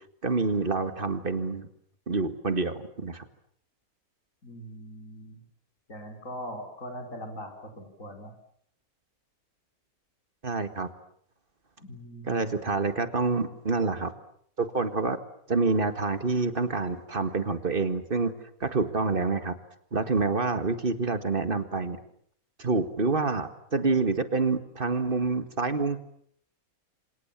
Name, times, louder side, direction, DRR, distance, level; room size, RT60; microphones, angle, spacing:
voice 1, 0.2-1.7 2.1-3.3 10.4-10.9 12.3-14.1 14.6-15.2 15.5-18.3 18.6-19.6 19.9-22.0 22.6-26.0, right 3 dB, 35° right, 10 dB, 2.0 m, -27 dB
voice 2, 4.4-5.4 5.9-8.3 11.8-12.5, equal, 60° left, 3 dB, 5.5 m, -41 dB
28.0 x 26.0 x 7.4 m, 0.65 s
omnidirectional pair, 1.5 m